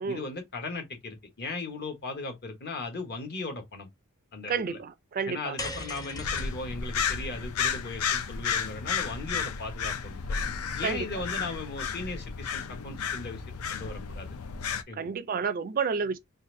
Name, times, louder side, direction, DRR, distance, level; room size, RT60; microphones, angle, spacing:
voice 1, 0.1-3.9 4.3-4.8 5.3-10.2 10.8-14.3 14.9-15.1, left 3 dB, 50° left, 1.1 m, -37 dB
voice 2, 4.4-5.6 10.8-11.2 14.9-16.2, right 5 dB, 40° right, 0.4 m, -30 dB
sound 1, 5.6-10.0, left 1 dB, 15° left, 0.6 m, -42 dB
sound 2, 6.2-14.8, left 6 dB, 85° left, 0.5 m, -32 dB
4.0 x 2.5 x 2.5 m
head